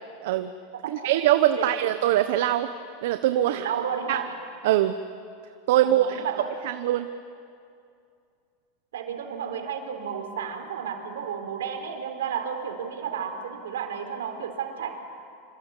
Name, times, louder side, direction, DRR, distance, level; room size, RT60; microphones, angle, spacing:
voice 1, 0.2-0.5 0.9-2.7 3.0-3.7 4.1-4.2 4.6-5.0 5.7-6.2 6.6-7.1, right 13 dB, 70° right, 9 dB, 1.1 m, -22 dB
voice 2, 3.4-4.3 5.8-6.5 8.9-15.0, right 7 dB, 85° right, 6 dB, 3.9 m, -32 dB
27.0 x 25.5 x 8.4 m, 2.4 s
hypercardioid pair, 110°, 0 cm